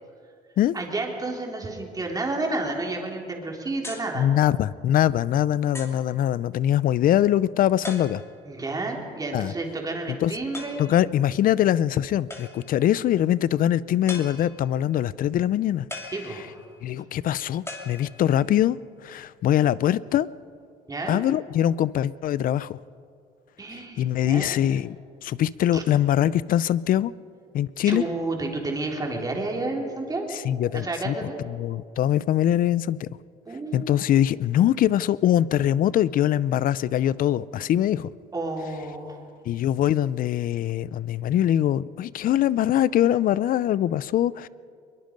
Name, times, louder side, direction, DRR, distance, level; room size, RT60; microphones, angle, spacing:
voice 1, 0.7-4.3 8.5-10.8 16.1-16.6 20.9-21.2 23.6-24.5 25.7-25.8 27.9-30.3 30.7-31.4 33.5-33.9 38.3-39.2, right 2 dB, 20° right, 0 dB, 3.7 m, -30 dB
sound 1, 3.8-4.2 4.9-5.0 5.7-6.1 7.8-8.5 10.5-11.0 12.3-12.8 14.1-14.8 15.9-16.8 17.7-18.5, left 2 dB, 15° left, 2.9 m, -39 dB
voice 2, 4.1-8.2 9.3-9.5 10.1-10.3 10.8-15.9 16.8-18.8 19.0-20.3 21.1-22.8 24.0-25.0 25.2-27.1 27.5-28.0 30.3-31.2 31.5-33.1 33.7-38.1 39.5-44.5, left 11 dB, 55° left, 19 dB, 0.5 m, -23 dB
22.5 x 22.5 x 5.3 m, 2.4 s
cardioid pair, 110°, 17 cm